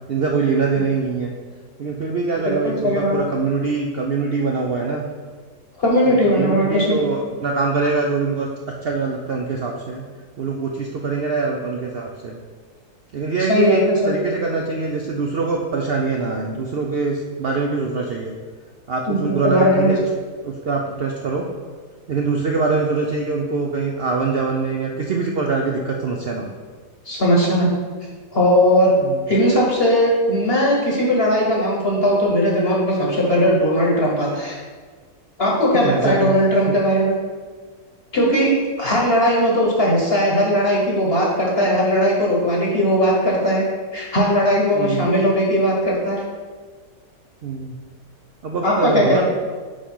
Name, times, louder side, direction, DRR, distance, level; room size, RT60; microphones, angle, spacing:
voice 1, 0.1-1.4 1.8-5.0 6.1-8.5 8.8-10.0 10.4-12.4 13.1-18.3 18.9-20.0 20.4-21.5 22.1-26.5 29.0-29.3 35.7-36.3 44.7-45.1 47.4-47.7 48.4-49.2, right 4 dB, 75° right, 0 dB, 0.5 m, -23 dB
voice 2, 2.5-3.2 5.8-7.0 13.5-14.2 19.1-19.9 27.1-27.7 28.3-29.0 29.3-34.6 35.4-37.2 38.1-43.7 43.9-46.2 48.6-49.2, equal, 45° left, -3 dB, 1.1 m, -18 dB
5.4 x 4.9 x 5.4 m, 1.5 s
omnidirectional pair, 1.7 m